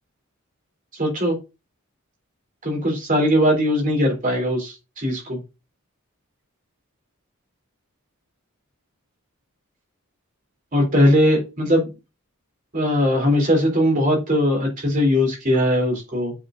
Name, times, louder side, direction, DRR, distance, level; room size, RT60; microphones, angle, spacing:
voice 1, 1.0-1.4 2.6-5.4 10.7-11.9 12.7-16.3, equal, 40° right, 0 dB, 3.4 m, -20 dB
7.9 x 5.9 x 2.6 m, 0.26 s
head